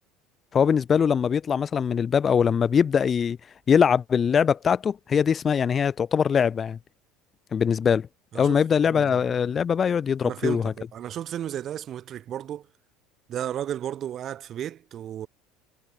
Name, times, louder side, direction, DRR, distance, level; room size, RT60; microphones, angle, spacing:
voice 1, 0.5-3.4 3.7-6.8 7.5-8.1 8.3-10.7, left 7 dB, 35° left, 0.4 m, -22 dB
sound 1, 9.0-12.6, left 16 dB, 70° left, 4.9 m, -55 dB
voice 2, 10.2-12.7 13.3-15.3, right 10 dB, 45° right, 2.3 m, -33 dB
figure-of-eight pair, 65°, 0 cm